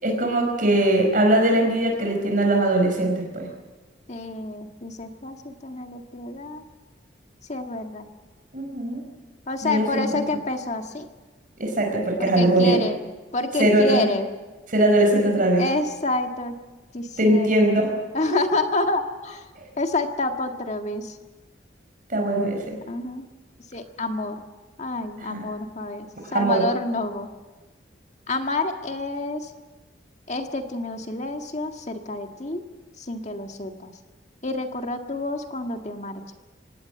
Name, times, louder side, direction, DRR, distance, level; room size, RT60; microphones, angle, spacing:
voice 1, 0.0-3.5 8.5-9.0 9.6-10.4 11.6-12.8 13.6-14.1 14.7-15.6 17.2-17.9 18.3-18.4 19.6-19.7 22.1-22.8 25.2-25.4 26.2-26.7, right 1 dB, 45° right, 2 dB, 4.8 m, -21 dB
voice 2, 4.1-6.6 7.5-8.1 9.5-11.1 12.2-13.0 13.3-14.3 15.6-16.6 16.9-17.6 18.1-19.5 19.8-21.2 22.9-23.3 23.7-24.4 24.8-27.3 28.3-29.5 30.3-32.6 33.0-33.9 34.4-36.3, left 2 dB, 40° left, 5 dB, 1.8 m, -28 dB
25.0 x 18.5 x 7.9 m, 1.2 s
head